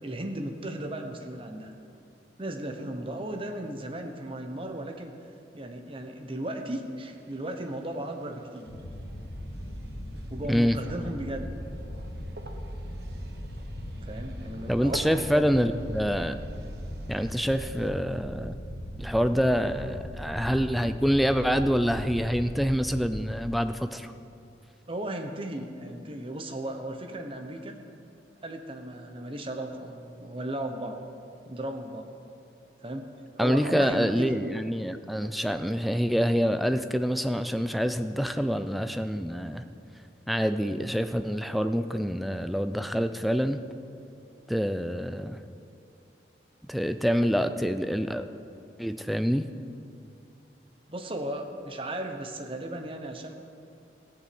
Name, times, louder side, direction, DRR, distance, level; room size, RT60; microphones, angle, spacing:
voice 1, 0.0-1.7 2.4-5.1 5.5-8.7 10.3-11.5 14.0-15.1 15.3-15.5 24.9-27.8 28.4-31.0 31.4-32.1 32.8-33.1 33.4-34.4 50.9-53.3, right 1 dB, 30° right, 5 dB, 1.1 m, -35 dB
sound 1, 7.1-17.9, right 1 dB, 60° right, 1.1 m, -49 dB
sound 2, 8.7-23.0, equal, 50° left, 1.5 m, -39 dB
voice 2, 14.7-16.4 17.1-18.6 19.0-24.1 33.4-39.6 40.3-43.6 44.5-45.4 46.7-48.3 48.8-49.5, equal, ahead, 9 dB, 0.4 m, -26 dB
16.5 x 7.1 x 7.8 m, 2.6 s
head